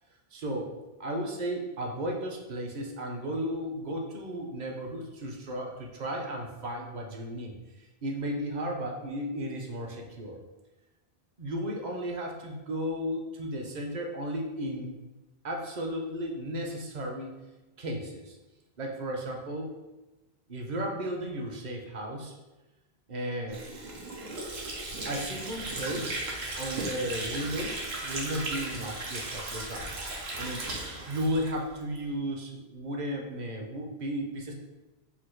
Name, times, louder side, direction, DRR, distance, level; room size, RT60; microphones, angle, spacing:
voice 1, 0.3-0.7 1.0-7.5 8.0-10.4 11.4-15.0 15.4-17.3 17.8-18.3 18.8-19.7 20.5-22.3 23.1-23.6 25.1-26.1 26.5-30.1 30.4-30.6 31.1-34.5, equal, 50° right, 1 dB, 0.7 m, -34 dB
Water / Sink (filling or washing), 23.5-32.0, right 2 dB, 80° right, 1.1 m, -36 dB
4.2 x 2.5 x 4.5 m, 1.1 s
omnidirectional pair, 1.0 m